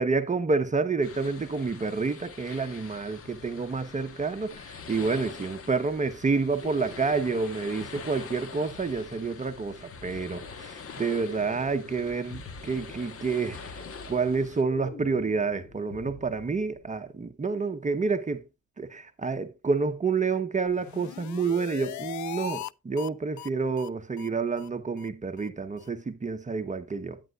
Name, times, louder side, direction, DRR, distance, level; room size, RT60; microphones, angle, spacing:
voice 1, 0.0-18.5 18.8-27.2, right 4 dB, 25° right, 1.0 m, -29 dB
sound 1, 1.0-14.6, left 6 dB, 50° left, 1.3 m, -45 dB
sound 2, 6.6-17.1, left 2 dB, 35° left, 2.2 m, -47 dB
sound 3, 20.7-22.7 23.0-23.1 23.4-23.5 23.8-23.9 24.2-24.3 24.6-24.7 25.0-25.1 25.4-25.5 25.8-25.9, left 15 dB, 70° left, 0.5 m, -39 dB
10.5 x 9.3 x 2.4 m
cardioid pair, 90°, 30 cm